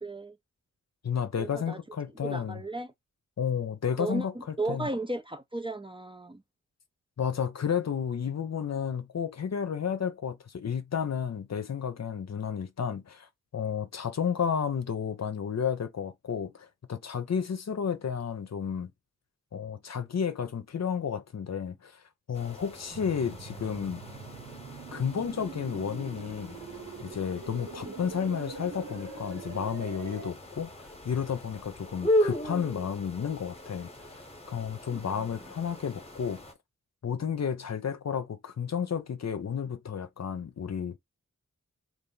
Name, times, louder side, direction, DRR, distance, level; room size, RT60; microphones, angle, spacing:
voice 1, 0.0-0.4 1.4-1.8 2.2-2.9 4.0-6.4 27.8-27.9 34.9-35.4, right 2 dB, 15° right, 0.5 m, -35 dB
voice 2, 1.0-2.6 3.4-4.9 7.2-18.9 19.5-22.0 22.3-24.0 24.9-26.6 27.0-34.2 34.5-36.4 37.0-41.0, left 7 dB, 55° left, 0.7 m, -32 dB
sound 1, 22.3-36.5, left 1 dB, 20° left, 1.1 m, -37 dB
sound 2, 22.9-30.3, right 5 dB, 75° right, 1.3 m, -43 dB
3.3 x 2.5 x 3.9 m
wide cardioid pair, 105°, 31 cm